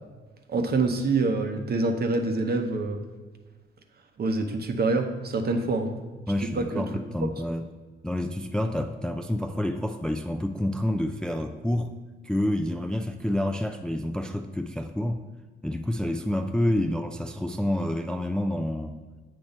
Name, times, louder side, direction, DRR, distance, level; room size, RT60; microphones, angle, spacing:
voice 1, 0.5-3.0 4.2-5.9 6.6-6.8, right 3 dB, 50° right, 5 dB, 0.8 m, -26 dB
voice 2, 6.3-7.7 8.0-11.9 12.2-15.2 15.6-18.9, left 1 dB, 5° left, 6 dB, 0.3 m, -28 dB
7.2 x 3.1 x 5.2 m, 1.3 s
cardioid pair, 70°, 21 cm